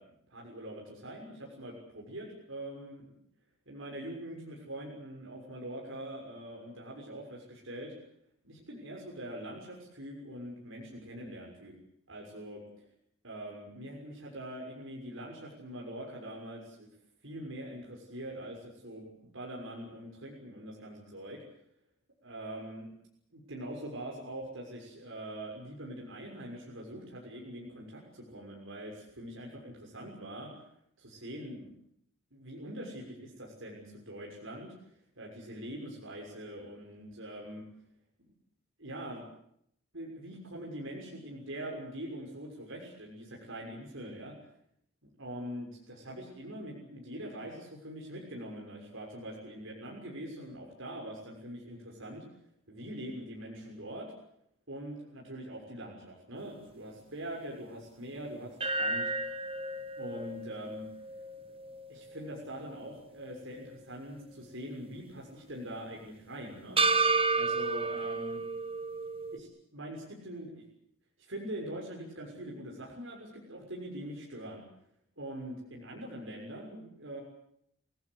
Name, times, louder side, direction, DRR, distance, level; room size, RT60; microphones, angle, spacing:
voice 1, 0.0-3.1 3.7-7.9 8.4-11.7 12.1-12.6 13.2-16.9 17.2-21.4 22.2-22.9 23.3-30.5 31.0-31.7 32.3-34.7 35.1-37.6 38.8-39.2 39.9-44.3 45.0-52.2 52.7-54.1 54.7-59.1 59.9-60.9 61.9-66.8 67.3-68.4 69.3-70.6 71.3-74.6 75.2-77.2, right 1 dB, 65° right, -2 dB, 6.5 m, -43 dB
sound 1, 58.6-62.9 63.3-63.4 66.8-69.4, right 3 dB, 25° right, 1.3 m, -32 dB
29.0 x 17.5 x 8.3 m, 0.72 s
head